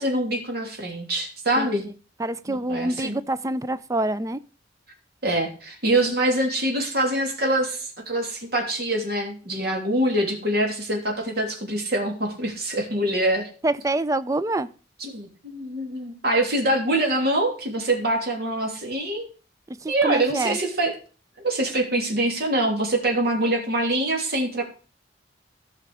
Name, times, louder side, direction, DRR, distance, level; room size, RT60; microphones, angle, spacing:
voice 1, 0.0-1.8 2.5-3.2 5.2-13.5 15.0-19.3 19.9-20.9 21.4-24.6, right 1 dB, 55° right, 1 dB, 3.0 m, -24 dB
voice 2, 2.2-4.4 13.6-14.7 19.7-20.6, right 2 dB, 15° right, 14 dB, 0.4 m, -26 dB
15.0 x 5.8 x 4.9 m, 0.37 s
head